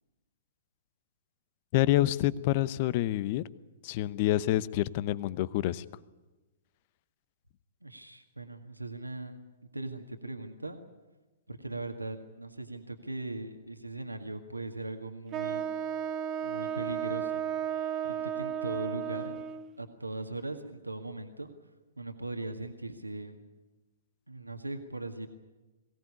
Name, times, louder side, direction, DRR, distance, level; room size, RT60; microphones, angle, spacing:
voice 1, 1.7-3.4 3.8-5.8, left 15 dB, 40° left, 19 dB, 0.8 m, -27 dB
voice 2, 7.8-9.4 9.7-10.9 11.5-15.7 16.4-17.4 18.0-19.4 19.8-21.5 22.0-23.4 24.3-25.3, right 2 dB, 85° right, 6 dB, 1.8 m, -39 dB
Wind instrument woodwind instrument, 15.3-19.7, right 9 dB, 25° right, 0.8 m, -34 dB
22.5 x 17.5 x 9.9 m, 1.2 s
figure-of-eight pair, 115°, 0 cm